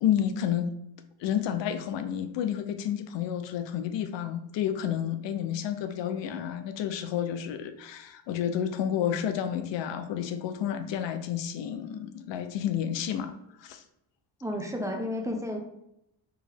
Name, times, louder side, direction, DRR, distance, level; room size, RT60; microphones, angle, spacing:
voice 1, 0.0-0.7 1.2-13.3 13.6-13.8, left 9 dB, 80° left, 9 dB, 0.6 m, -30 dB
voice 2, 14.4-15.6, left 1 dB, 5° right, 1 dB, 0.6 m, -32 dB
4.7 x 2.9 x 3.4 m, 0.80 s
cardioid pair, 130°, 43 cm